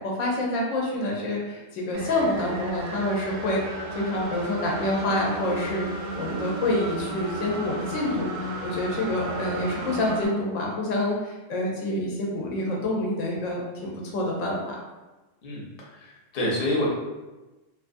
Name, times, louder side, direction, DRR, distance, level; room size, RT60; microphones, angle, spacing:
voice 1, 0.0-5.9 6.2-14.8, left 1 dB, 85° left, -2 dB, 0.9 m, -27 dB
sound 1, 1.9-10.3, right 2 dB, 55° right, 0.6 m, -34 dB
voice 2, 15.9-16.9, left 1 dB, 55° left, -4 dB, 0.9 m, -27 dB
2.5 x 2.4 x 2.5 m, 1.1 s
omnidirectional pair, 1.3 m